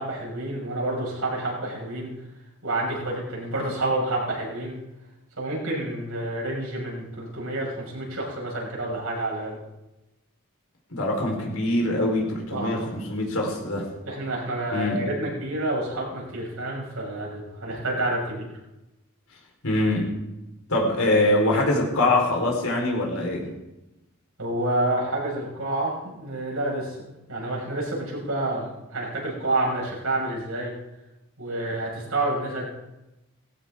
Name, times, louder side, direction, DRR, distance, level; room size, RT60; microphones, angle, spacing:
voice 1, 0.0-2.1 2.6-4.8 5.4-9.6 12.5-12.8 14.0-18.5 24.4-30.7 31.4-32.6, right 1 dB, 85° right, -4 dB, 6.2 m, -29 dB
voice 2, 10.9-13.9 14.7-15.0 19.6-20.2 20.7-23.5, left 1 dB, 75° left, -1 dB, 4.5 m, -23 dB
18.0 x 15.0 x 3.8 m, 0.98 s
head